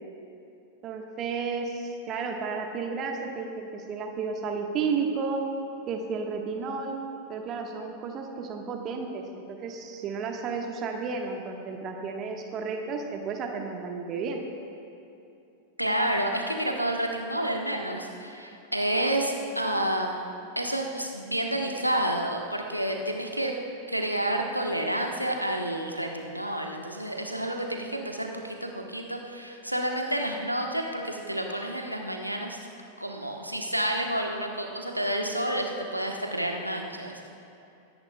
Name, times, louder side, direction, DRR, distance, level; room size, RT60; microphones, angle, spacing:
voice 1, 0.8-5.4 5.9-6.9 7.3-14.4, right 5 dB, 35° right, 2 dB, 1.2 m, -32 dB
voice 2, 15.8-20.3 20.5-23.5 23.9-32.6 33.0-37.3, right 1 dB, 90° right, 2 dB, 1.1 m, -29 dB
22.5 x 10.0 x 2.3 m, 2.8 s
figure-of-eight pair, 90°, 0 cm